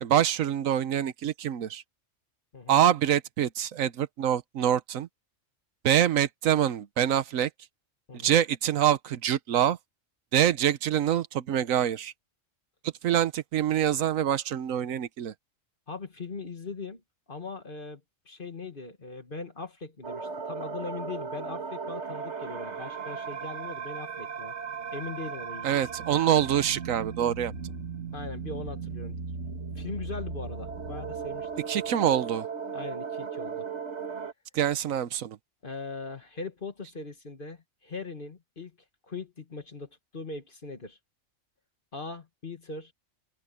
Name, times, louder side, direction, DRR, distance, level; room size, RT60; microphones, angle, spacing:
voice 1, 0.0-1.8 2.7-5.1 5.8-7.5 8.2-9.8 10.3-12.1 13.0-15.3 25.6-27.5 31.7-32.5 34.5-35.4, right 10 dB, 90° right, 1.2 m, -25 dB
voice 2, 15.9-17.0 17.3-24.5 24.9-25.9 28.1-29.2 29.8-31.6 32.7-33.7 35.6-38.8 39.1-41.0 41.9-42.9, left 3 dB, 40° left, 1.8 m, -40 dB
sound 1, 20.0-34.3, right 5 dB, 60° right, 2.0 m, -36 dB
open air
omnidirectional pair, 1.3 m